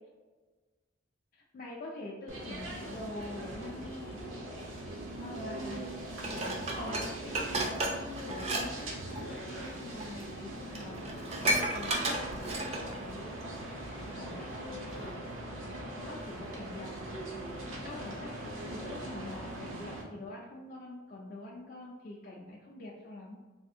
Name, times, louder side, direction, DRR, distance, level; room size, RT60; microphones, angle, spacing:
voice 1, 1.3-4.2 5.1-5.9 6.3-12.2 12.5-13.4 14.1-15.3 15.9-16.9 17.8-23.4, left 2 dB, 45° left, -3 dB, 0.3 m, -45 dB
sound 1, 2.3-20.0, right 1 dB, 90° right, 0.7 m, -41 dB
Dishes pots and pans, 6.2-8.7 9.0-9.2 10.0-10.1 10.4-10.5 10.7-13.0 13.4-13.5, right 1 dB, 30° right, 0.4 m, -32 dB
3.3 x 2.4 x 2.6 m, 1.3 s
head